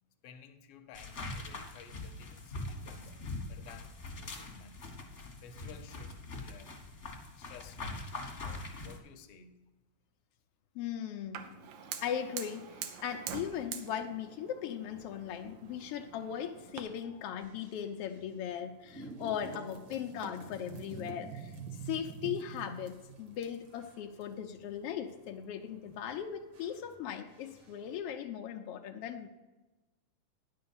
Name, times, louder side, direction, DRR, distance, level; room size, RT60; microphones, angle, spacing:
voice 1, 0.2-4.8 5.4-6.7 7.4-8.1 8.4-9.6 17.0-17.2, left 6 dB, 70° left, 1.4 m, -55 dB
sound 1, 0.9-9.0, left 2 dB, 45° left, 0.9 m, -43 dB
voice 2, 10.7-11.5 12.0-12.7 13.0-21.6 21.8-29.3, left 9 dB, 90° left, 1.3 m, -38 dB
Fire, 11.3-16.8, right 8 dB, 80° right, 2.3 m, -45 dB
Rolling weight on floor, 14.8-28.0, right 5 dB, 55° right, 1.8 m, -50 dB
10.5 x 5.6 x 7.0 m
omnidirectional pair, 3.4 m